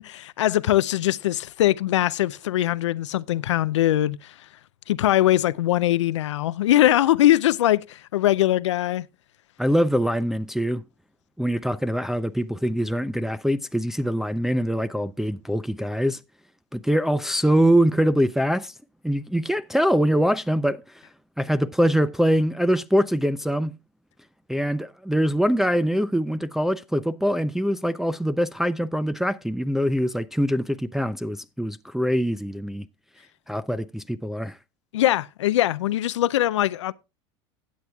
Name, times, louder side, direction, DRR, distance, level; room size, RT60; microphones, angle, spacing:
voice 1, 0.0-4.3 4.9-9.1 34.9-36.9, left 14 dB, 85° left, 0.4 m, -21 dB
voice 2, 9.6-10.8 11.4-16.2 16.7-18.7 19.0-20.8 21.4-23.8 24.5-32.9 33.5-34.6, equal, ahead, 0.5 m, -23 dB
15.5 x 8.7 x 2.3 m
hypercardioid pair, 90°, 15 cm